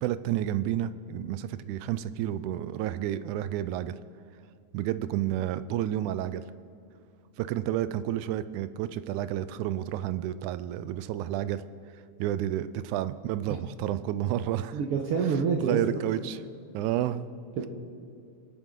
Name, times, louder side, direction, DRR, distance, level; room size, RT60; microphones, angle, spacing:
voice 1, 0.0-3.9 4.7-6.5 7.4-11.6 12.2-14.8 15.6-16.4 16.7-17.2, right 12 dB, 80° right, 14 dB, 1.9 m, -30 dB
voice 2, 14.7-16.0 17.6-17.7, right 5 dB, 65° right, 2 dB, 1.5 m, -27 dB
26.0 x 9.0 x 3.8 m, 2.5 s
omnidirectional pair, 3.5 m